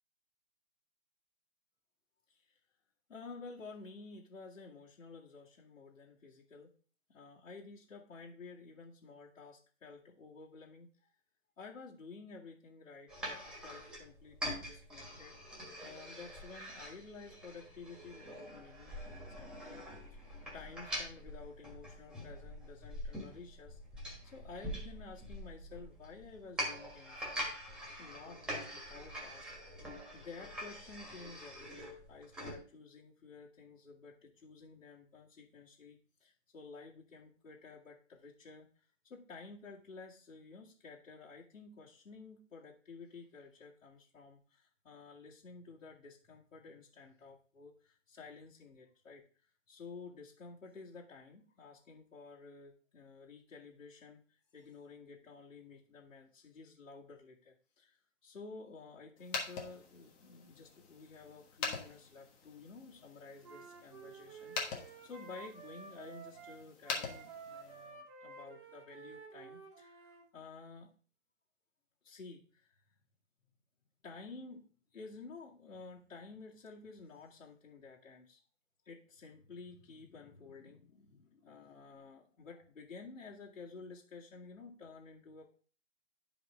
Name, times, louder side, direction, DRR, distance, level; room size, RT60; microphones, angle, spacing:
voice 1, 3.1-6.7 7.1-11.1 11.6-19.8 20.1-20.3 20.5-29.5 29.8-29.9 30.1-70.9 72.0-73.0 74.0-78.4 78.9-85.5, left 4 dB, 85° left, -5 dB, 2.2 m, -52 dB
sound 1, 13.1-32.6, equal, ahead, 1.4 m, -44 dB
sound 2, 59.2-67.9, left 5 dB, 20° left, 1.3 m, -44 dB
Wind instrument woodwind instrument, 63.4-70.2, right 5 dB, 20° right, 1.1 m, -52 dB
10.5 x 5.1 x 3.6 m, 0.40 s
hypercardioid pair, 145°, 39 cm